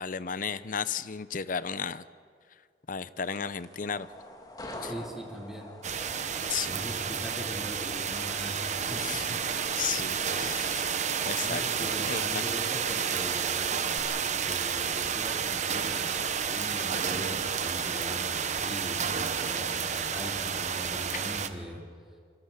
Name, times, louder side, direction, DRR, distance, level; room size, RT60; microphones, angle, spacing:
voice 1, 0.0-2.0 2.9-4.1 4.8-4.9 6.5-6.8 9.0-9.4 9.8-11.6 12.0-12.4, left 6 dB, 50° left, 16 dB, 0.7 m, -34 dB
sound 1, 3.2-14.0, left 1 dB, 20° left, 2.1 m, -47 dB
voice 2, 4.8-5.7 6.7-9.2 9.8-10.0 11.4-13.7 14.3-19.1 19.5-21.8, equal, 5° right, -1 dB, 3.2 m, -41 dB
sound 2, 5.8-21.5, right 7 dB, 40° right, 1.0 m, -31 dB
25.5 x 24.5 x 5.8 m, 2.1 s
head